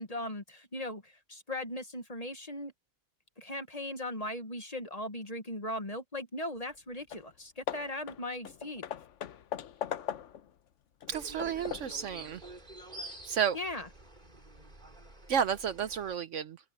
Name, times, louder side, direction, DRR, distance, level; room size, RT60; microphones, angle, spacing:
voice 1, 0.0-2.7 3.4-8.9 13.5-13.9, left 1 dB, 30° left, 1.4 m, -38 dB
Hammer / Wood, 6.7-6.8 7.1-7.3 7.7-10.5 11.0-12.0, left 9 dB, 65° left, 1.1 m, -40 dB
sound 1, 11.1-16.1, right 1 dB, 35° right, 4.4 m, -49 dB
voice 2, 11.1-12.4 13.3-13.6 15.3-16.6, right 8 dB, 65° right, 1.0 m, -31 dB
open air
omnidirectional pair, 1.5 m